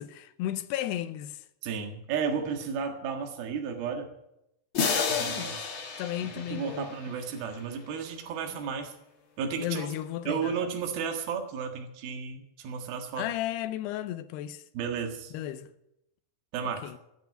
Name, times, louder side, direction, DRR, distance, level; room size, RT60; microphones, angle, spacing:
voice 1, 0.0-1.5 4.8-5.6 6.0-6.9 9.6-10.5 13.2-14.6 15.3-15.7 16.6-17.0, left 12 dB, 85° left, 2.8 m, -34 dB
voice 2, 1.6-4.1 5.1-5.6 6.2-8.9 9.4-9.9 10.3-13.3 14.8-15.3 16.5-16.8, right 6 dB, 70° right, 3.4 m, -33 dB
sound 1, 4.7-7.6, left 5 dB, 45° left, 1.8 m, -32 dB
18.5 x 6.7 x 9.2 m
omnidirectional pair, 4.8 m